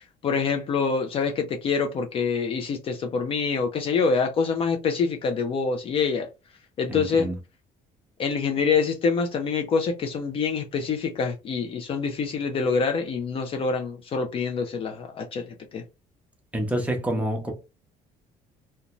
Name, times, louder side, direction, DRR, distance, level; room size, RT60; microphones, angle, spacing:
voice 1, 0.2-6.3 6.8-7.3 8.2-15.8, left 5 dB, 40° left, 0.4 m, -26 dB
voice 2, 6.9-7.4 16.5-17.5, right 1 dB, 10° right, 0.6 m, -27 dB
2.5 x 2.1 x 2.9 m
cardioid pair, 155°, 15 cm